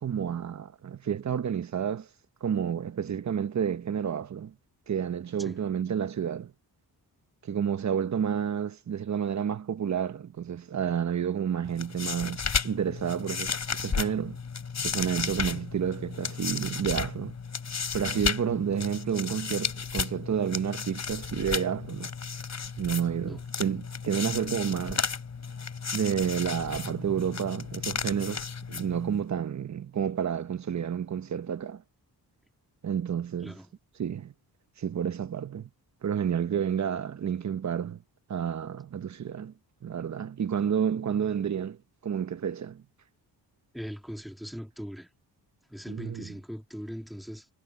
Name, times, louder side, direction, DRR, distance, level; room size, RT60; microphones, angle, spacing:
voice 1, 0.0-2.1 2.4-4.5 4.9-6.5 7.4-12.4 12.6-14.4 14.8-17.4 17.9-22.1 22.8-25.0 25.9-31.8 32.8-33.6 34.0-34.3 34.8-35.7 36.0-38.0 38.3-39.5 39.8-41.8 42.0-42.8 45.9-46.3, right 8 dB, 45° right, 1.1 m, -30 dB
sound 1, 11.6-29.2, left 6 dB, 45° left, 5.7 m, -34 dB
voice 2, 33.4-33.7 43.7-45.1 45.7-47.5, equal, ahead, 3.0 m, -40 dB
wide cardioid pair, 125°, 39 cm